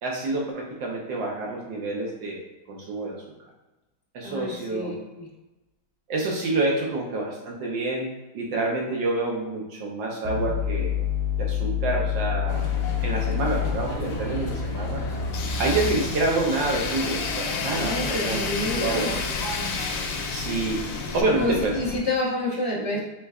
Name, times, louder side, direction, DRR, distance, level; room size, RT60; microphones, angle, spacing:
voice 1, 0.0-3.2 4.1-5.0 6.1-10.9 11.4-12.7 13.0-15.0 15.6-19.2 20.3-20.8 21.1-21.7, right 2 dB, 70° right, -1 dB, 1.4 m, -28 dB
voice 2, 4.2-5.3 17.7-19.1 21.4-23.0, left 1 dB, 35° left, -6 dB, 0.9 m, -28 dB
sound 1, 10.3-16.2, left 7 dB, 85° right, 1.5 m, -28 dB
sound 2, 12.5-22.0, left 3 dB, 60° left, 1.2 m, -34 dB
Tools, 15.3-21.2, left 5 dB, 90° left, 1.5 m, -32 dB
5.3 x 3.7 x 2.3 m, 1.0 s
omnidirectional pair, 2.2 m